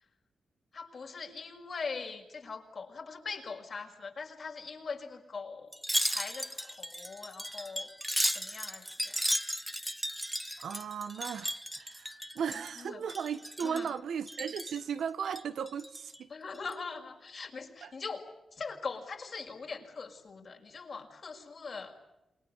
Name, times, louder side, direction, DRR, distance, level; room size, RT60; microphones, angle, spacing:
voice 1, 0.7-5.7 6.1-7.9 8.3-9.2 12.8-13.0 13.6-13.9 16.3-18.2 18.5-22.0, left 4 dB, 60° left, 6.0 m, -41 dB
Wind chime, 5.7-12.8 13.1-13.9 14.3-14.8 15.3-16.2 16.6-16.7, equal, ahead, 1.0 m, -35 dB
voice 2, 10.6-16.3 17.8-17.9, right 7 dB, 85° right, 1.3 m, -36 dB
28.0 x 22.5 x 8.3 m
cardioid pair, 65°, 0 cm